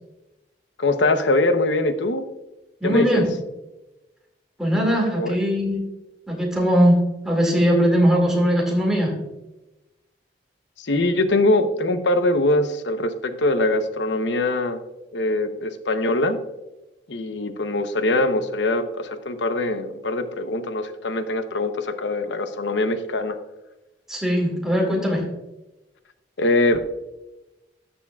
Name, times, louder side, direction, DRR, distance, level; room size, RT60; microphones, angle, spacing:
voice 1, 0.8-2.2 2.8-3.3 5.1-5.3 10.8-14.8 15.1-16.4 17.1-23.4 26.4-26.9, left 2 dB, 85° left, 9 dB, 0.8 m, -22 dB
voice 2, 2.8-3.2 4.6-5.8 6.3-9.1 24.1-25.2, equal, 5° right, -1 dB, 2.1 m, -20 dB
12.5 x 7.1 x 2.3 m, 0.99 s
head